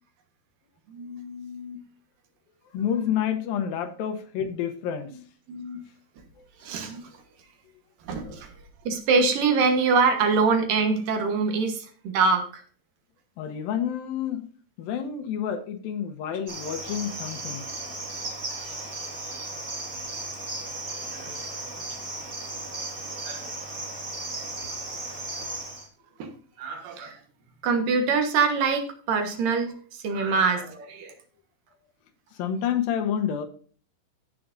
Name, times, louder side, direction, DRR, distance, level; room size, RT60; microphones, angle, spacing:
voice 1, 0.9-1.8 3.0-3.1 5.5-5.8 6.6-7.2 8.0-8.5 8.8-12.6 18.5-19.0 21.1-21.5 23.3-23.5 26.2-26.3 26.6-27.2 27.6-31.1, right 4 dB, 70° right, 5 dB, 2.9 m, -25 dB
voice 2, 2.7-5.1 6.4-6.7 13.4-14.5 14.8-17.7 24.2-24.3 30.2-30.3 32.3-33.5, left 9 dB, 75° left, 8 dB, 2.7 m, -29 dB
Cricket, 16.5-25.9, right 2 dB, 30° right, 1.8 m, -35 dB
16.0 x 6.7 x 2.6 m, 0.44 s
omnidirectional pair, 4.2 m